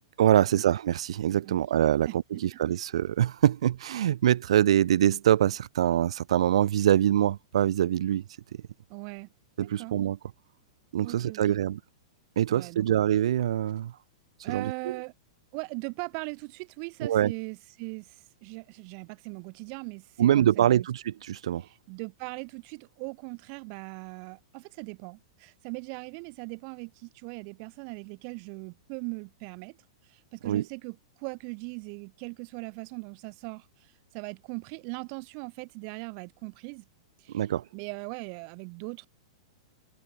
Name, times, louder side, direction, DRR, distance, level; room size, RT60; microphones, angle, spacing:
voice 1, 0.2-8.2 9.6-10.2 10.9-11.8 12.4-13.9 14.5-14.7 17.0-17.3 20.2-21.6 30.4-30.6 37.3-37.6, right 11 dB, 80° right, 0.5 m, -24 dB
voice 2, 2.1-2.4 8.9-9.3 9.8-10.0 11.0-11.6 12.5-12.9 14.4-15.1 15.5-20.9 21.6-29.8 30.0-36.8 37.2-39.1, right 40 dB or more, 45° right, 1.9 m, -40 dB
hypercardioid pair, 140°, 3 cm